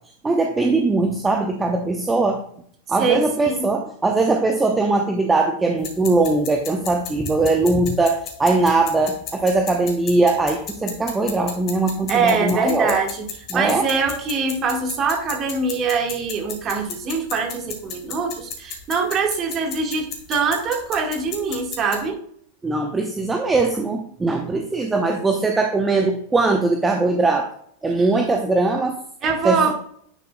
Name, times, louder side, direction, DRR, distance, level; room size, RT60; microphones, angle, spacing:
voice 1, 0.2-2.4 2.9-13.0 13.5-13.9 22.6-27.5 27.8-29.0 29.4-29.7, right 3 dB, 10° right, 3 dB, 0.8 m, -20 dB
voice 2, 3.0-3.7 12.1-13.3 13.5-22.2 29.2-29.7, right 4 dB, 30° right, 3 dB, 1.6 m, -23 dB
sound 1, 5.8-22.1, left 6 dB, 35° left, 1.9 m, -36 dB
10.0 x 6.8 x 2.2 m, 0.62 s
figure-of-eight pair, 90°, 0 cm